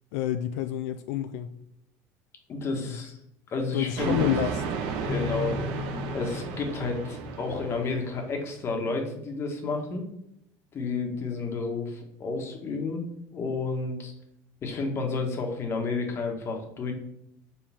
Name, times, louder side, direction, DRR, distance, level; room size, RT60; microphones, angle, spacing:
voice 1, 0.1-1.5 2.8-3.0 3.7-4.6, left 12 dB, 90° left, 10 dB, 0.4 m, -28 dB
voice 2, 2.5-3.2 3.5-4.2 5.0-5.6 6.1-10.1 10.7-13.0 13.3-14.1 14.6-16.9, left 3 dB, 35° left, 3 dB, 1.5 m, -31 dB
sound 1, 4.0-8.5, right 5 dB, 70° right, 1.2 m, -33 dB
Keyboard (musical), 5.0-7.9, left 7 dB, 5° left, 0.8 m, -38 dB
7.4 x 4.7 x 3.6 m, 0.79 s
cardioid pair, 140°, 8 cm